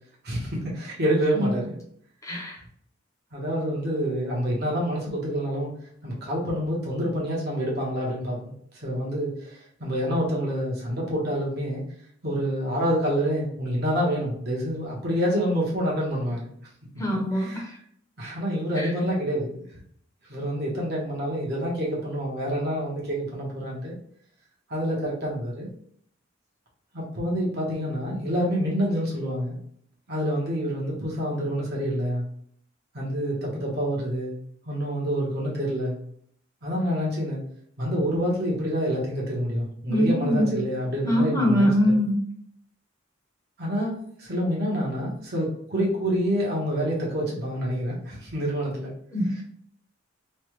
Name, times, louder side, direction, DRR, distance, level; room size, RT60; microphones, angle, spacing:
voice 1, 0.2-1.8 3.3-5.7 6.0-8.5 8.8-11.8 12.2-16.5 17.3-17.7 18.2-19.6 20.3-23.9 24.7-25.7 26.9-29.6 30.1-32.2 32.9-34.4 34.7-35.9 36.6-37.4 37.8-41.7 43.6-48.9, equal, 55° right, -4 dB, 1.1 m, -27 dB
voice 2, 2.2-2.6 17.0-17.6 18.8-18.9 39.9-40.7 41.0-42.2 49.1-49.4, equal, 15° left, -2 dB, 0.8 m, -23 dB
3.2 x 2.2 x 3.0 m, 0.64 s
head